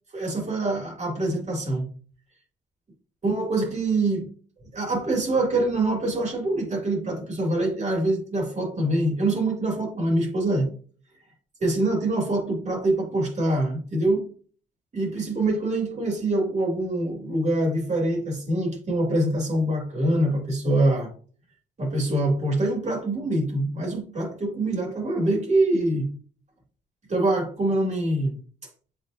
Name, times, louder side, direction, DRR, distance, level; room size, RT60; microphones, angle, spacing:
voice 1, 0.1-1.9 3.2-4.3 4.7-10.7 11.6-14.2 14.9-21.1 21.8-26.1 27.1-28.3, right 2 dB, 35° right, 1 dB, 2.9 m, -24 dB
7.8 x 4.6 x 3.0 m, 0.42 s
cardioid pair, 90°, 20 cm